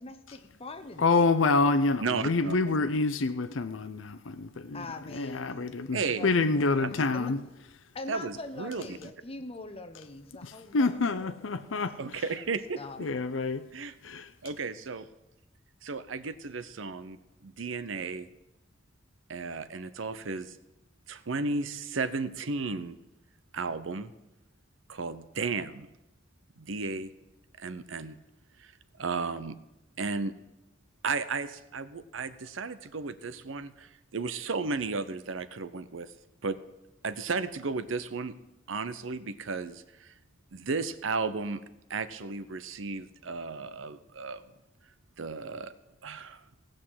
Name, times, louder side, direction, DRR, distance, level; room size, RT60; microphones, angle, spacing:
voice 1, 0.0-1.0 1.6-1.7 4.7-5.7 6.1-7.3 7.9-11.5 12.0-12.1 12.8-13.0, left 2 dB, 30° left, 7 dB, 1.0 m, -42 dB
voice 2, 1.0-4.9 5.1-7.4 10.4-11.9 13.0-13.6 14.0-14.3, left 3 dB, 75° left, 10 dB, 0.7 m, -27 dB
voice 3, 2.0-2.8 5.9-6.4 7.0-7.1 8.1-9.0 12.0-12.8 13.7-13.9 14.4-15.1 15.8-18.3 19.3-20.6 21.1-23.0 23.5-24.1 24.9-25.9 26.6-27.1 27.6-28.1 28.6-28.7 29.0-29.6 30.0-30.3 31.0-36.1 36.4-36.6 37.0-38.3 38.7-40.1 40.5-41.6 41.9-44.4 45.2-45.7 46.0-46.4, right 4 dB, 75° right, 13 dB, 0.8 m, -34 dB
17.0 x 6.4 x 7.6 m, 0.93 s
head